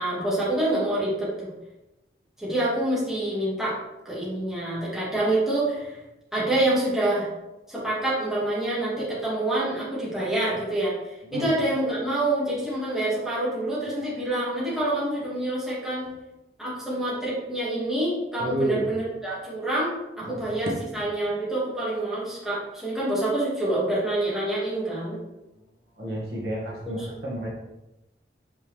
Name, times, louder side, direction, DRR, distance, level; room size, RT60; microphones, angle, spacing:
voice 1, 0.0-1.5 2.4-3.8 4.0-6.0 6.3-7.3 7.7-16.1 16.6-19.9 20.2-25.2 27.0-27.1, right 1 dB, ahead, -9 dB, 2.2 m, -27 dB
voice 2, 18.4-18.9 20.2-20.4 26.0-27.5, right 1 dB, 65° right, -5 dB, 1.7 m, -30 dB
5.9 x 5.5 x 3.5 m, 0.98 s
head